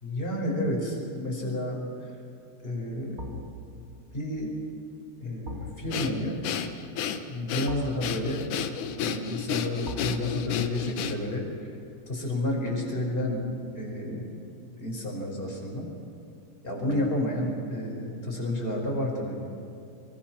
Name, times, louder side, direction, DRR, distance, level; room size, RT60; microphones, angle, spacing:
voice 1, 0.0-1.8 2.6-3.3 3.7-3.8 4.1-4.5 5.2-6.4 7.3-8.4 9.0-11.4 12.1-13.4 13.7-14.3 14.8-15.9 16.6-19.4, left 1 dB, 10° left, -1 dB, 4.9 m, -30 dB
sound 1, 3.2-14.2 14.5-14.6, equal, 60° right, 0.7 m, -45 dB
Breathing, 5.9-11.4, left 8 dB, 80° left, 1.8 m, -32 dB
25.0 x 24.0 x 6.0 m, 2.7 s
omnidirectional pair, 5.2 m